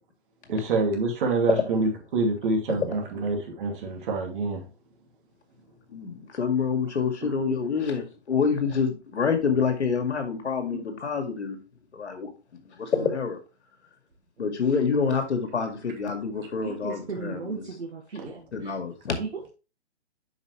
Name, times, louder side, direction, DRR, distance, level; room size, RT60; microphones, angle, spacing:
voice 1, 0.5-4.6 18.2-18.3, right 3 dB, 50° right, 2.6 m, -26 dB
voice 2, 5.9-11.6 11.9-12.3 12.8-13.4 14.4-17.6 18.5-19.1, left 5 dB, 75° left, 2.2 m, -27 dB
voice 3, 16.6-18.7 19.2-19.5, right 5 dB, 80° right, 1.6 m, -36 dB
8.1 x 5.7 x 3.2 m
hypercardioid pair, 145°, 34 cm